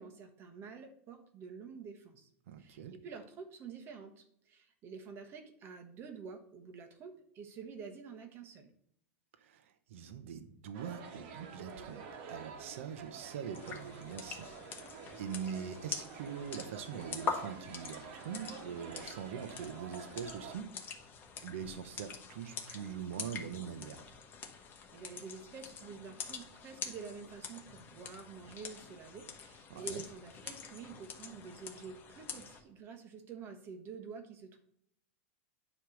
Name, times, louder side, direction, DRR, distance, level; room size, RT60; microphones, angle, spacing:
voice 1, 0.0-2.3 2.6-8.7 24.9-34.6, right 5 dB, 35° right, 5 dB, 1.2 m, -48 dB
voice 2, 2.5-2.9 9.4-14.6 14.9-20.7 21.4-24.0 29.7-30.0, right 7 dB, 80° right, 10 dB, 1.0 m, -43 dB
sound 1, 10.7-20.6, right 6 dB, 55° right, 1.5 m, -49 dB
sound 2, 13.5-32.6, left 6 dB, 30° left, 1.4 m, -45 dB
9.5 x 3.3 x 6.4 m, 0.71 s
supercardioid pair, 140°, 7 cm